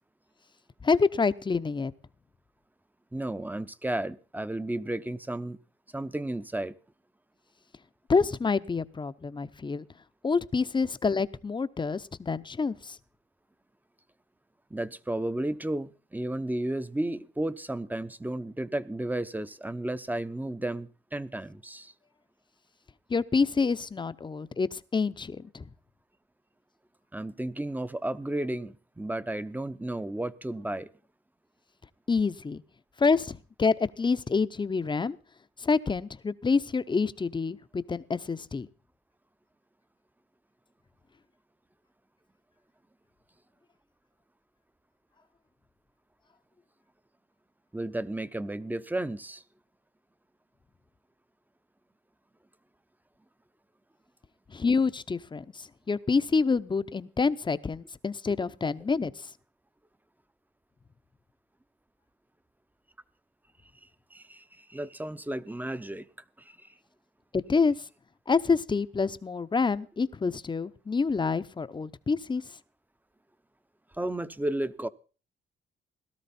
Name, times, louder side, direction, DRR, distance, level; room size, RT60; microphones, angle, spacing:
voice 1, 0.8-1.9 8.1-9.9 10.2-13.0 23.1-25.6 32.1-32.6 33.0-35.2 35.6-38.7 54.5-59.3 67.3-67.8 68.3-72.4, left 4 dB, 25° left, 0.7 m, -27 dB
voice 2, 3.1-5.6 5.9-6.8 14.7-21.9 27.1-30.9 47.7-49.4 64.1-66.1 66.4-66.7 73.9-74.9, right 1 dB, 10° right, 0.7 m, -33 dB
17.0 x 12.5 x 4.3 m
cardioid pair, 90°, 20 cm